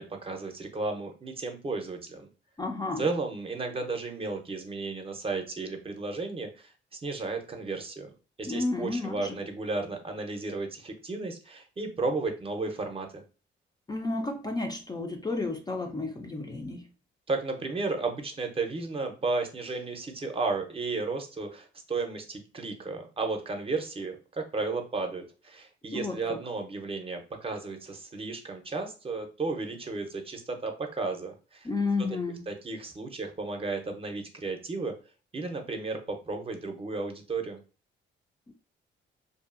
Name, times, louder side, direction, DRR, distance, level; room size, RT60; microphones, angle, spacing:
voice 1, 0.0-2.3 3.0-6.7 7.0-8.1 8.4-13.2 17.3-31.7 32.5-35.0 35.3-37.6, right 3 dB, 30° right, 4 dB, 0.6 m, -33 dB
voice 2, 2.6-3.0 8.5-9.4 13.9-16.8 25.9-26.2 31.6-32.4 38.5-38.6, left 3 dB, 20° left, 3 dB, 0.4 m, -31 dB
2.6 x 2.4 x 2.4 m, 0.34 s
cardioid pair, 90°, 20 cm